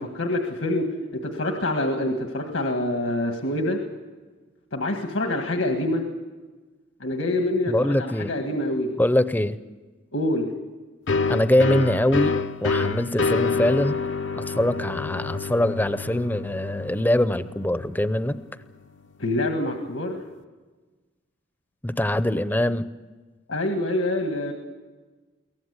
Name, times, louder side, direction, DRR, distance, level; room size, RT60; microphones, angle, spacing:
voice 1, 0.0-3.8 4.7-6.0 7.0-8.9 10.1-10.5 19.2-20.2 23.5-24.5, left 1 dB, 80° left, 4 dB, 1.7 m, -26 dB
voice 2, 7.7-8.3 9.0-9.6 11.3-14.0 14.4-18.4 21.8-22.9, left 1 dB, 10° left, 13 dB, 0.6 m, -23 dB
sound 1, 11.1-18.5, left 4 dB, 65° left, 0.8 m, -28 dB
23.0 x 18.0 x 8.2 m, 1.3 s
head